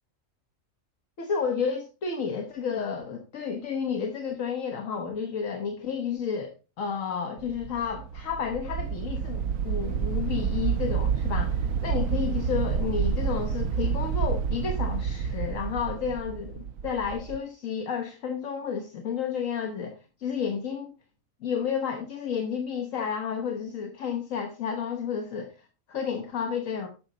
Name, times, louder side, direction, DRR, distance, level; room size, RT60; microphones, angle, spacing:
voice 1, 1.2-20.9 21.4-26.9, left 6 dB, 75° left, 1.5 m, -31 dB
sound 1, 7.4-17.4, right 6 dB, 85° right, 1.1 m, -29 dB
9.5 x 6.5 x 3.9 m
omnidirectional pair, 1.4 m